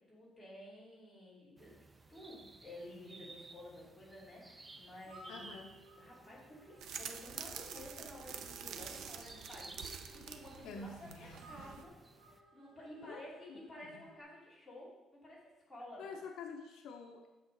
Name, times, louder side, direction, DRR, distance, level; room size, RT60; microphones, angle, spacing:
voice 1, 0.1-1.7 2.1-5.4 6.0-11.9 12.3-16.1, left 1 dB, 5° left, -8 dB, 2.7 m, -52 dB
sound 1, 1.6-12.4, right 3 dB, 15° right, 0.4 m, -57 dB
sound 2, 5.0-14.2, right 2 dB, 40° right, 2.1 m, -61 dB
voice 2, 5.3-5.8 10.6-11.4 13.0-13.6 13.9-14.0 16.0-17.3, left 4 dB, 70° left, 4 dB, 0.7 m, -48 dB
sound 3, 6.8-11.8, right 7 dB, 60° right, 0.6 m, -47 dB
8.7 x 6.7 x 3.9 m, 1.1 s
cardioid pair, 165°, 0 cm